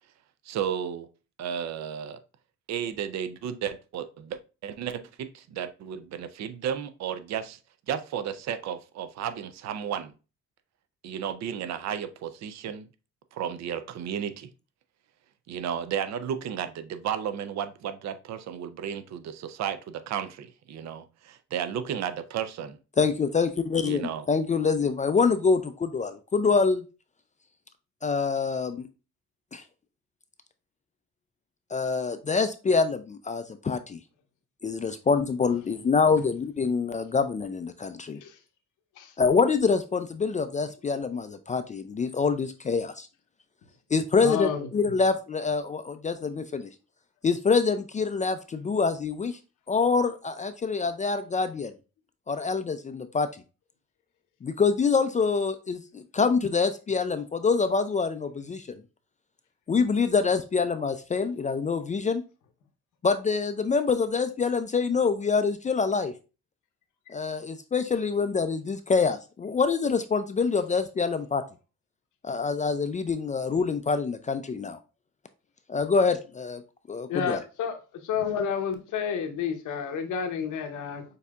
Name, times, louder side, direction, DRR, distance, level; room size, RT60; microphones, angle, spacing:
voice 1, 0.5-1.1 1.4-2.2 2.7-7.6 7.9-10.1 11.0-12.9 13.3-14.5 15.5-22.8 23.8-24.2, right 8 dB, 65° right, 0.5 m, -33 dB
voice 2, 23.0-26.8 28.0-28.9 29.5-29.6 31.7-34.0 34.6-38.2 39.2-43.1 43.9-46.7 47.2-49.4 49.7-51.7 52.3-53.3 54.4-58.7 59.7-62.2 63.0-66.1 67.1-71.4 72.2-74.8 75.7-76.6 76.9-77.4, left 5 dB, 25° left, 0.3 m, -25 dB
voice 3, 44.2-44.9 77.1-77.8 78.0-81.0, left 7 dB, 80° left, 0.9 m, -30 dB
6.5 x 2.8 x 2.3 m
cardioid pair, 90°, 30 cm